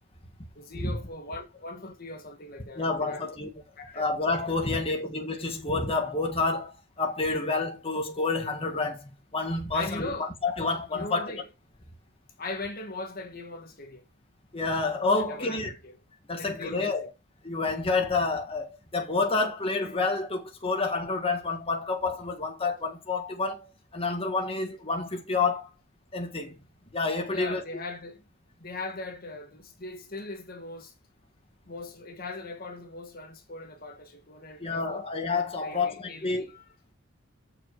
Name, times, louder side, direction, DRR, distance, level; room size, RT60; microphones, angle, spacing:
voice 1, 0.5-3.3 3.8-4.1 4.7-4.8 9.7-10.3 10.9-11.4 12.4-14.0 15.2-15.9 16.4-17.1 27.3-28.3 28.6-30.9 31.6-35.0 35.6-36.7, left 2 dB, 45° left, 1.6 m, -40 dB
voice 2, 2.8-3.5 3.9-11.4 14.5-15.7 16.3-17.1 17.4-25.7 26.1-26.5 26.9-27.6 34.6-35.9 36.2-36.5, left 3 dB, 25° left, 1.6 m, -29 dB
7.0 x 5.8 x 6.5 m
head